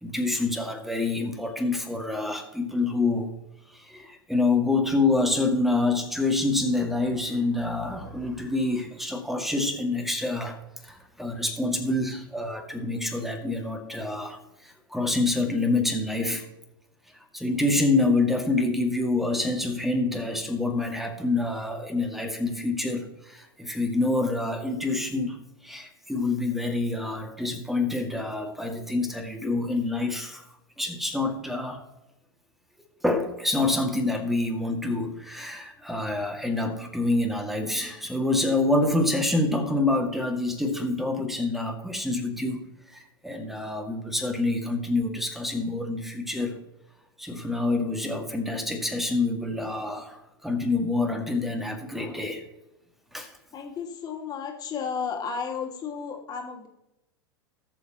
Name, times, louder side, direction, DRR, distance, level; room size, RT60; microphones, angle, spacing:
voice 1, 0.0-3.3 3.7-16.4 17.1-25.4 25.6-30.4 30.8-31.8 33.0-42.6 42.9-46.6 47.2-52.4 53.1-53.4, left 2 dB, ahead, 4 dB, 2.1 m, -27 dB
voice 2, 53.5-56.7, left 6 dB, 35° left, 1 dB, 2.5 m, -33 dB
18.5 x 7.1 x 3.0 m, 0.89 s
hypercardioid pair, 90°, 12 cm